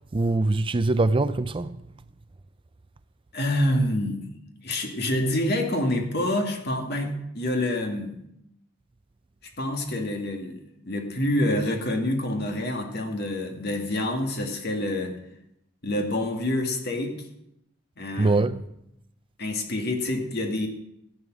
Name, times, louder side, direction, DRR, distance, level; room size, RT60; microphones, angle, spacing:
voice 1, 0.1-1.8 18.2-18.6, right 2 dB, 25° right, 0.4 m, -23 dB
voice 2, 3.3-4.3 4.6-8.1 9.6-15.2 15.8-17.2 18.0-18.4 19.4-20.7, left 1 dB, 55° left, 2.2 m, -27 dB
14.5 x 8.8 x 6.2 m
head